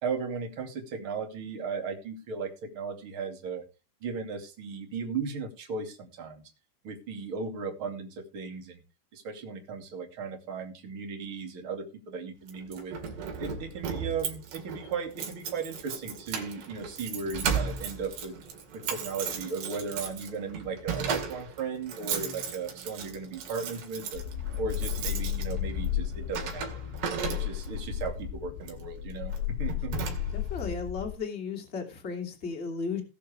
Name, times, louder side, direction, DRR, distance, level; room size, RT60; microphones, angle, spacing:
voice 1, 0.0-3.6 4.0-6.4 6.8-8.8 9.1-12.9 13.4-18.3 18.9-24.2 24.6-26.8 27.2-29.3 29.6-30.0, right 5 dB, 35° right, 3 dB, 2.3 m, -36 dB
Keys jangling, 12.5-27.8 28.6-28.9 29.3-29.4 29.7-30.6, right 6 dB, 60° right, 4.0 m, -36 dB
sound 1, 24.1-31.1, left 11 dB, 85° left, 3.6 m, -34 dB
voice 2, 30.3-33.0, left 5 dB, 20° left, 2 dB, 1.8 m, -35 dB
19.5 x 6.8 x 3.4 m, 0.31 s
omnidirectional pair, 5.5 m